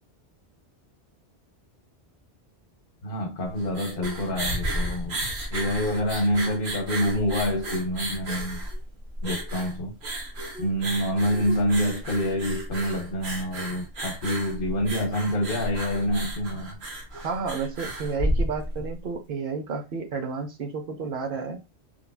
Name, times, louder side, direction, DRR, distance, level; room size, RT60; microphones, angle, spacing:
voice 1, 3.0-8.7 9.2-10.0 10.6-16.8, equal, 60° left, 0.8 m, -27 dB
sound 1, 3.5-18.9, right 1 dB, 80° right, 1.2 m, -32 dB
voice 2, 17.1-21.6, right 4 dB, 60° right, 0.7 m, -31 dB
3.1 x 2.3 x 2.2 m
omnidirectional pair, 1.1 m